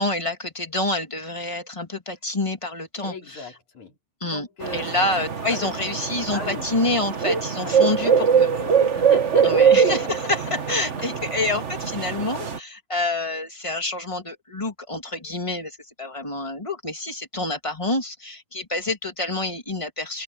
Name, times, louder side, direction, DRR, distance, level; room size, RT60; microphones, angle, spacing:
voice 1, 0.0-3.5 4.2-4.5 4.7-8.7 9.4-20.2, left 2 dB, 10° left, 2.0 m, -27 dB
voice 2, 3.0-4.0 4.2-4.9 5.5-5.7 6.3-6.7 7.6-9.7 10.7-10.8, left 4 dB, 65° left, 6.4 m, -38 dB
sound 1, 4.6-12.6, right 7 dB, 65° right, 0.6 m, -22 dB
omnidirectional pair, 3.6 m